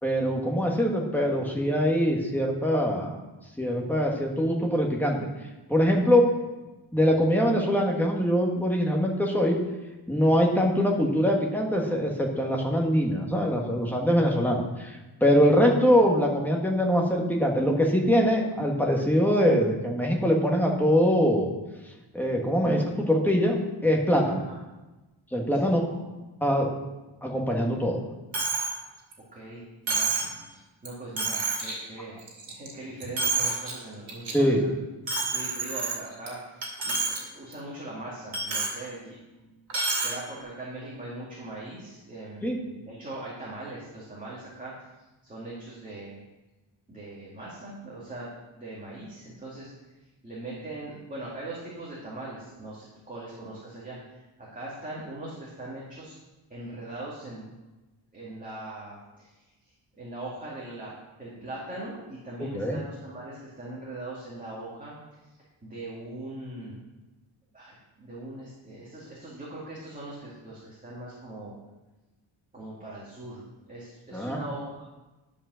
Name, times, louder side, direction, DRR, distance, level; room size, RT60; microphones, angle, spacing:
voice 1, 0.0-3.2 3.6-5.2 5.7-6.2 6.9-9.6 10.1-21.5 22.1-23.6 23.8-24.4 25.3-25.8 26.4-26.7 27.2-28.0 34.3-34.6 42.4-42.6 62.4-62.8 74.1-74.4, equal, 5° left, 0 dB, 1.4 m, -23 dB
voice 2, 25.6-26.2 29.3-30.2 30.5-32.2 32.5-34.7 35.2-44.7 45.2-46.2 46.9-49.7 50.2-54.0 54.4-56.1 56.5-57.5 58.1-59.3 60.0-60.9 61.2-64.9 65.6-66.8 67.5-71.5 72.5-74.8, right 2 dB, 15° right, -7 dB, 2.2 m, -40 dB
Coin (dropping), 28.3-28.7 29.1-29.2 29.9-30.3 30.8-30.9 31.2-31.7 32.2-32.7 33.0-33.7 34.1-34.3 35.1-36.3 36.6-37.2 37.5-37.6 38.3-38.8 39.7-40.1, right 4 dB, 70° right, 2.4 m, -28 dB
10.5 x 5.3 x 6.2 m, 1.1 s
wide cardioid pair, 160°, 48 cm